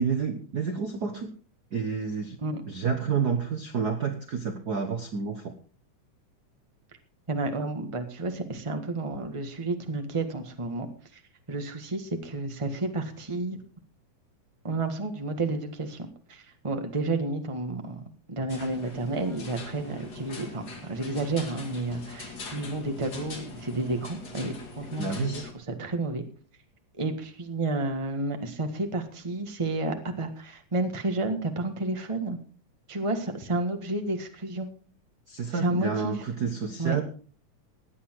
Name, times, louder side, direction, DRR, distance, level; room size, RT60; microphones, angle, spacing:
voice 1, 0.0-1.3 1.7-2.4 2.7-5.6 25.0-25.5 35.3-37.0, right 6 dB, 70° right, 6 dB, 0.9 m, -29 dB
voice 2, 7.3-10.9 11.1-11.2 11.5-13.6 14.6-18.0 18.3-26.2 27.0-32.4 32.9-34.7 35.5-36.1 36.8-37.0, right 2 dB, 20° right, 6 dB, 0.8 m, -31 dB
sound 1, 18.5-25.5, left 3 dB, 35° left, 2.4 m, -42 dB
17.0 x 9.9 x 4.7 m, 0.40 s
omnidirectional pair, 3.6 m